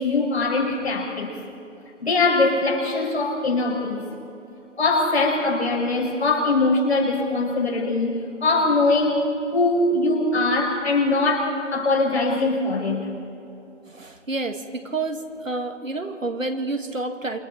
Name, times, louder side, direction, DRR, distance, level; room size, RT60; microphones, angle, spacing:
voice 1, 0.0-1.4 2.0-4.0 4.8-9.2 9.5-13.0, left 3 dB, 55° left, -1 dB, 6.3 m, -22 dB
voice 2, 13.9-17.4, right 2 dB, 85° right, 5 dB, 2.6 m, -29 dB
28.5 x 25.0 x 4.4 m, 2.8 s
figure-of-eight pair, 155°, 38 cm